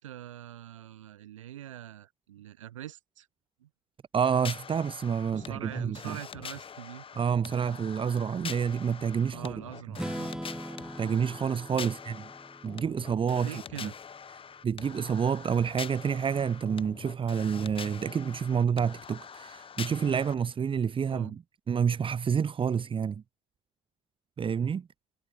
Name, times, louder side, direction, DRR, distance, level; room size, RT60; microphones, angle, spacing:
voice 1, 0.0-3.3 3.6-3.7 5.3-7.0 9.3-10.6 11.8-11.9 13.4-13.9 21.1-21.4, right 12 dB, 80° right, 5.9 m, -44 dB
voice 2, 4.1-6.2 7.2-9.6 11.0-12.1 12.6-13.5 13.8-13.9 14.6-21.3 21.7-23.2 24.4-24.9, right 7 dB, 35° right, 1.3 m, -28 dB
sound 1, 4.2-20.3, left 7 dB, 35° left, 1.7 m, -44 dB
Strum, 9.9-13.9, right 1 dB, 5° right, 1.6 m, -41 dB
hypercardioid pair, 60°, 16 cm